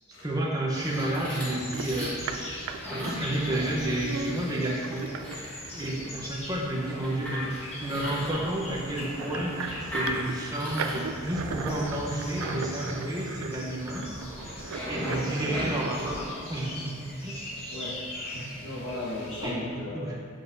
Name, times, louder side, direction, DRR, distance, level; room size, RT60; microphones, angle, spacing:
voice 1, 0.2-2.3 2.9-5.1 5.7-7.5 7.8-14.0 14.9-17.5 19.4-19.6 19.9-20.2, right 1 dB, 15° right, -3 dB, 0.9 m, -31 dB
sound 1, 0.7-19.5, left 1 dB, 30° left, 1.1 m, -42 dB
sound 2, 0.8-16.2, equal, 5° left, 1.2 m, -38 dB
sound 3, 1.7-5.4 6.7-6.8 7.2-7.3 8.0-15.9, right 4 dB, 75° right, 0.4 m, -38 dB
voice 2, 17.7-20.1, left 1 dB, 70° left, -8 dB, 1.2 m, -37 dB
7.7 x 5.7 x 2.7 m, 2.2 s
head